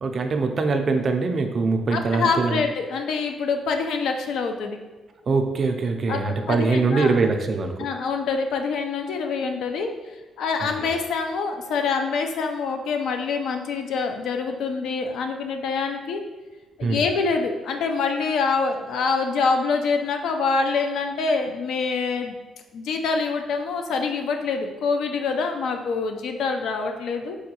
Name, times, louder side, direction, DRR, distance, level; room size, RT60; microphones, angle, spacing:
voice 1, 0.0-2.6 5.3-7.9 10.8-10.9 16.8-17.0, right 4 dB, 50° right, 5 dB, 0.4 m, -23 dB
voice 2, 1.9-4.8 6.1-7.1 7.8-9.9 10.4-16.2 16.8-22.3 22.7-27.4, left 4 dB, 75° left, 5 dB, 0.4 m, -25 dB
4.6 x 2.2 x 2.8 m, 1.2 s
cardioid pair, 90°, 0 cm